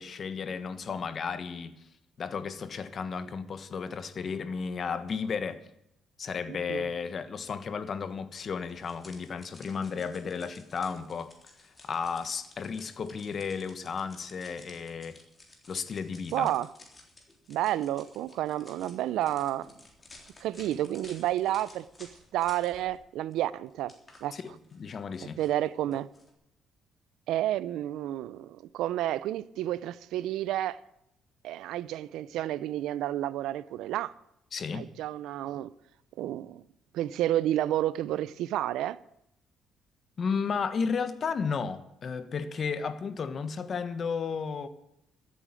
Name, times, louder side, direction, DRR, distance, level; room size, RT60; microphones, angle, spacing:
voice 1, 0.0-1.7 2.2-5.6 6.2-11.3 11.8-15.2 15.7-16.5 24.3-25.4 34.5-34.9 40.2-44.7, left 5 dB, 45° left, 1.3 m, -33 dB
sound 1, 8.5-23.0 23.3-26.3, left 2 dB, 25° left, 3.6 m, -55 dB
voice 2, 16.3-16.7 17.5-19.7 20.4-23.9 24.2-24.3 25.2-26.1 27.3-30.8 31.4-34.1 34.7-35.7 36.2-36.6 36.9-39.0, right 13 dB, 85° right, 0.5 m, -30 dB
14.0 x 8.6 x 8.8 m
cardioid pair, 95°, 0 cm